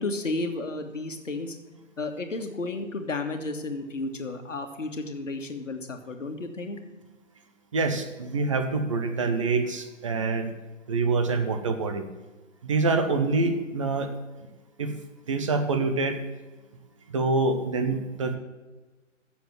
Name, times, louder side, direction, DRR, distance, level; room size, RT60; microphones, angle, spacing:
voice 1, 0.0-1.5 2.0-6.8, left 2 dB, 75° left, 5 dB, 1.6 m, -32 dB
voice 2, 7.7-10.5 10.9-12.1 12.6-14.1 14.8-14.9 15.3-16.2 17.1-18.4, right 3 dB, 25° right, 7 dB, 0.7 m, -26 dB
7.7 x 7.1 x 7.6 m, 1.2 s
figure-of-eight pair, 145°, 39 cm